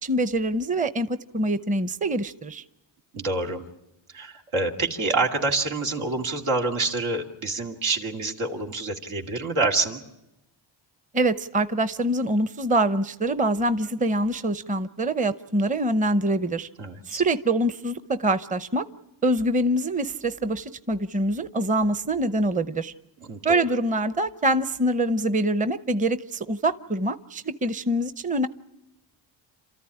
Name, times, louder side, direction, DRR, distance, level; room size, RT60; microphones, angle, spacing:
voice 1, 0.0-2.6 11.1-16.7 17.1-18.8 19.2-22.9 23.4-28.5, right 1 dB, 15° right, 13 dB, 0.8 m, -25 dB
voice 2, 3.1-3.7 4.1-10.0 16.8-17.2 23.2-23.6, right 3 dB, 80° right, 1 dB, 2.6 m, -27 dB
28.0 x 13.5 x 9.9 m, 0.94 s
cardioid pair, 85°, 48 cm